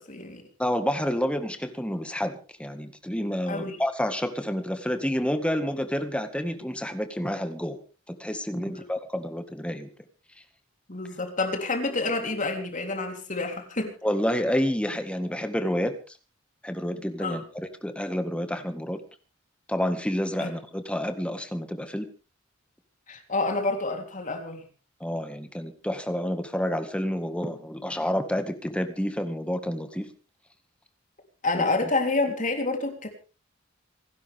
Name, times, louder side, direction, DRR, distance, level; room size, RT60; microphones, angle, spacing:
voice 1, 0.0-0.4 3.5-3.8 8.6-8.9 10.9-13.9 17.2-17.4 20.4-20.5 23.1-24.7 31.4-33.1, left 3 dB, 40° left, 4 dB, 3.6 m, -28 dB
voice 2, 0.6-7.8 8.1-9.9 14.0-16.2 16.6-19.0 19.7-22.1 25.0-30.1 31.5-31.9, equal, 5° left, 8 dB, 1.8 m, -29 dB
27.0 x 12.5 x 3.6 m, 0.35 s
head